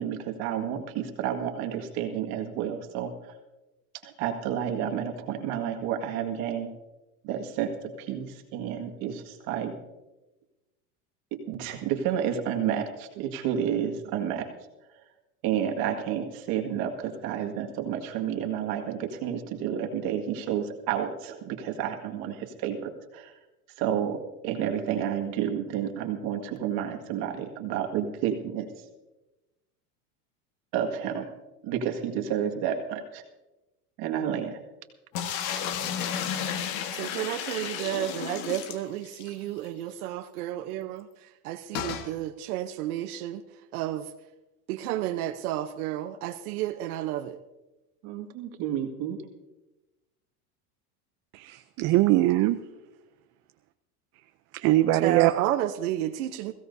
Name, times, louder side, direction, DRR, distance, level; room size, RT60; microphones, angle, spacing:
voice 1, 0.0-3.1 4.0-6.7 7.2-9.8 11.3-14.5 15.4-23.3 23.8-28.7 30.7-31.3 31.6-33.2 34.0-34.6 38.0-38.2 48.0-49.2, right 9 dB, 50° right, 3 dB, 2.0 m, -30 dB
sound 1, 35.1-39.3 39.7-39.8 40.0-40.1 41.7-42.1, left 8 dB, 60° left, 1.6 m, -32 dB
voice 2, 36.9-41.1 41.4-43.4 43.7-44.0 44.7-47.4 55.0-56.5, right 13 dB, 75° right, 6 dB, 0.9 m, -31 dB
voice 3, 51.3-52.6 54.5-55.3, right 16 dB, 35° right, 10 dB, 0.5 m, -22 dB
21.5 x 16.5 x 2.7 m, 1.0 s
supercardioid pair, 140°, 45 cm